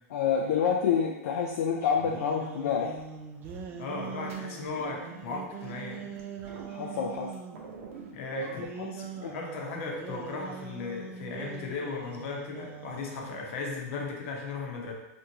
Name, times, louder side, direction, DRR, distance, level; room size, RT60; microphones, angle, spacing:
voice 1, 0.1-2.9 6.7-7.3 8.4-8.5 8.8-8.9 9.2-9.3, left 7 dB, 75° left, -1 dB, 0.4 m, -28 dB
sound 1, 1.8-7.6 8.4-13.5, right 7 dB, 25° right, 0.4 m, -42 dB
sound 2, 2.9-8.7, right 4 dB, 70° right, 0.8 m, -47 dB
voice 2, 3.8-6.1 8.1-14.9, left 3 dB, 60° left, 0 dB, 0.8 m, -36 dB
3.5 x 2.6 x 2.8 m, 0.99 s
supercardioid pair, 140°, 8 cm